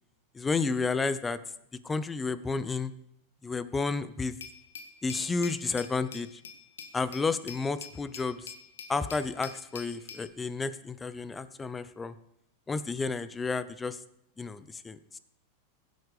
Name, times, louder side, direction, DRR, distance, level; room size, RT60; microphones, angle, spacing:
voice 1, 0.3-1.4 1.8-2.9 3.4-4.3 5.0-6.3 6.9-8.5 8.9-12.1 12.7-14.0 14.4-15.2, left 4 dB, 15° left, 14 dB, 0.8 m, -31 dB
Glass, 4.4-10.3, left 6 dB, 80° left, 1.5 m, -46 dB
16.0 x 8.4 x 5.0 m, 0.76 s
hypercardioid pair, 110°, 0 cm